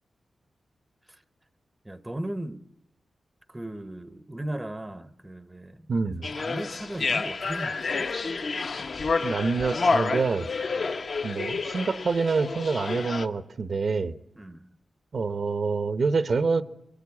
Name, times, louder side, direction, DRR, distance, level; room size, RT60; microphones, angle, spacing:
voice 1, 1.8-2.6 3.5-8.1 10.8-11.0 14.4-14.7, right 1 dB, 10° right, 0.8 m, -37 dB
voice 2, 5.9-6.3 9.2-10.5 11.2-14.2 15.1-16.6, right 4 dB, 50° right, 0.8 m, -26 dB
sound 1, 6.2-13.3, left 4 dB, 45° left, 0.9 m, -29 dB
23.5 x 18.5 x 8.4 m
wide cardioid pair, 155°, 0 cm